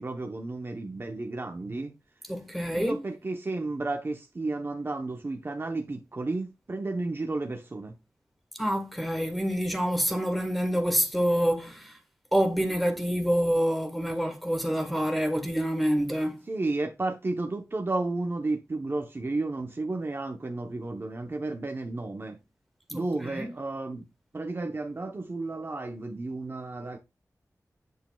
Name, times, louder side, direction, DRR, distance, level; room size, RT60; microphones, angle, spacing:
voice 1, 0.0-1.9 2.7-7.9 16.5-22.4 22.9-24.0 24.3-27.0, right 2 dB, 40° right, 0.8 m, -32 dB
voice 2, 2.3-3.0 8.6-12.0 12.3-16.4 22.9-23.5, equal, ahead, 1.5 m, -27 dB
8.3 x 6.5 x 2.3 m
wide cardioid pair, 110°, 6 cm